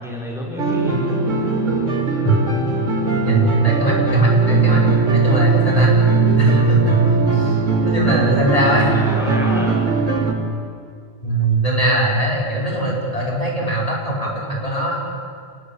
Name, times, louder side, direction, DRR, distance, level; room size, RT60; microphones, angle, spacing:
voice 1, 0.0-1.5 8.7-9.8 13.6-13.7, left 1 dB, ahead, -2 dB, 4.6 m, -30 dB
sound 1, 0.6-10.3, right 4 dB, 90° right, 3.5 m, -18 dB
voice 2, 3.2-6.0 6.2-6.9 7.3-8.9 11.2-14.9, right 2 dB, 30° left, -2 dB, 5.0 m, -20 dB
28.5 x 21.0 x 8.6 m, 2.3 s
omnidirectional pair, 1.2 m